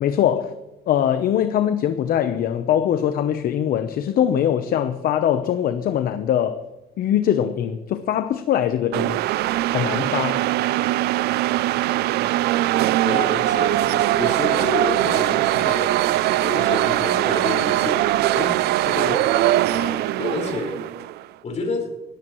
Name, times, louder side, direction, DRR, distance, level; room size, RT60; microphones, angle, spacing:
voice 1, 0.0-0.5 0.9-6.6 7.0-9.2 9.7-10.5, left 10 dB, 60° left, 0.8 m, -22 dB
sound 1, 8.9-21.2, right 15 dB, 75° right, 0.4 m, -21 dB
voice 2, 12.7-20.8 21.4-21.9, left 3 dB, 40° left, 4.9 m, -30 dB
18.5 x 14.0 x 3.1 m
cardioid pair, 110°, 17 cm